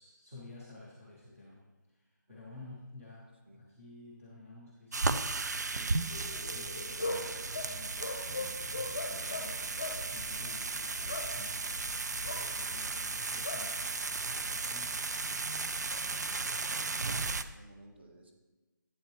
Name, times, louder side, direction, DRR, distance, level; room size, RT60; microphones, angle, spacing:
voice 1, 0.0-1.6 1.9-15.0, left 2 dB, 5° right, -14 dB, 0.5 m, -52 dB
sound 1, 4.9-17.4, right 3 dB, 60° right, 0.5 m, -35 dB
sound 2, 6.1-15.0, left 2 dB, 25° left, 0.8 m, -41 dB
voice 2, 15.9-18.3, right 1 dB, 35° right, 3 dB, 1.2 m, -55 dB
11.0 x 8.4 x 3.0 m, 1.2 s
hypercardioid pair, 180°, 11 cm